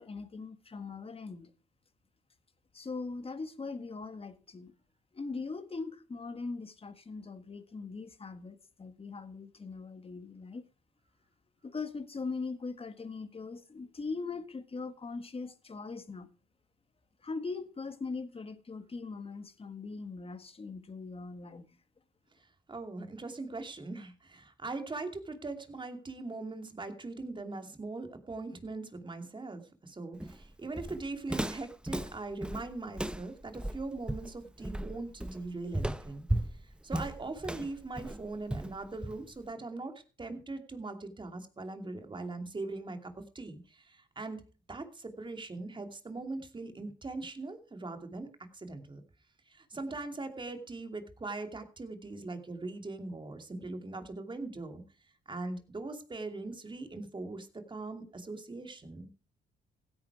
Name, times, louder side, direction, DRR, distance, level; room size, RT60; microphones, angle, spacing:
voice 1, 0.0-1.5 2.7-4.7 5.1-10.6 11.6-16.3 17.2-21.7, left 4 dB, 30° left, 1.7 m, -40 dB
voice 2, 22.7-36.3 36.8-44.4 44.7-49.0 49.5-54.8 55.3-59.1, right 3 dB, 25° right, 2.7 m, -41 dB
Walk footsteps, 30.2-39.5, right 1 dB, 5° right, 0.7 m, -36 dB
16.0 x 9.7 x 4.8 m
cardioid pair, 90°, 20 cm